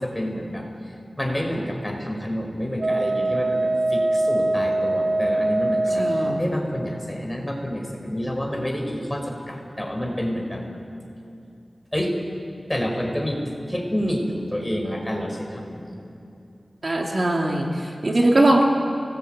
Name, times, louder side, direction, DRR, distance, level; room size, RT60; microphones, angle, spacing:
voice 1, 0.0-10.6 11.9-12.1 12.7-13.4 13.7-16.0, equal, 10° left, 2 dB, 5.0 m, -28 dB
Wind instrument woodwind instrument, 2.8-6.5, right 2 dB, 65° right, 1.5 m, -22 dB
voice 2, 6.0-6.4 16.8-18.6, right 1 dB, 50° right, 0 dB, 3.1 m, -20 dB
29.0 x 19.5 x 9.1 m, 2.6 s
wide cardioid pair, 80°, 0 cm